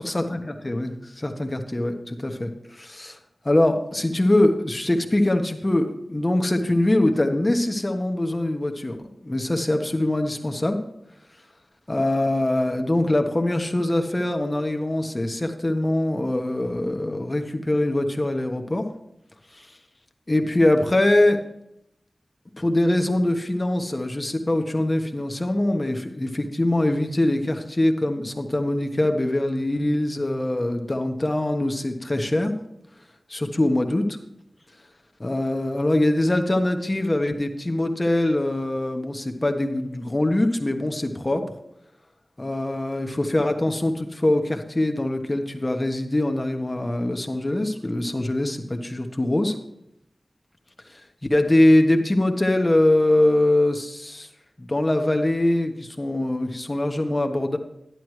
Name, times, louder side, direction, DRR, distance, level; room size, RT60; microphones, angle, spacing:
voice 1, 0.1-3.2 3.4-10.8 11.9-18.8 19.5-19.7 20.3-21.4 22.6-32.5 33.3-34.2 35.2-41.4 42.4-49.6 50.9-51.0 51.3-54.3 54.6-57.6, left 1 dB, 30° left, 5 dB, 1.2 m, -23 dB
11.0 x 11.0 x 3.2 m, 0.81 s
wide cardioid pair, 65°, 0 cm